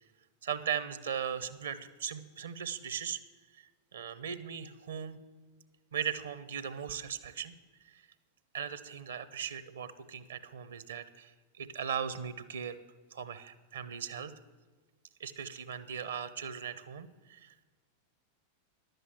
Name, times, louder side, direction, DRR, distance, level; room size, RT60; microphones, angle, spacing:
voice 1, 0.4-3.2 3.6-5.2 5.9-7.6 7.9-8.0 8.5-11.3 11.6-12.8 13.1-14.3 15.2-17.6, right 8 dB, 65° right, 13 dB, 0.8 m, -38 dB
11.0 x 8.0 x 7.7 m, 1.3 s
figure-of-eight pair, 90°, 0 cm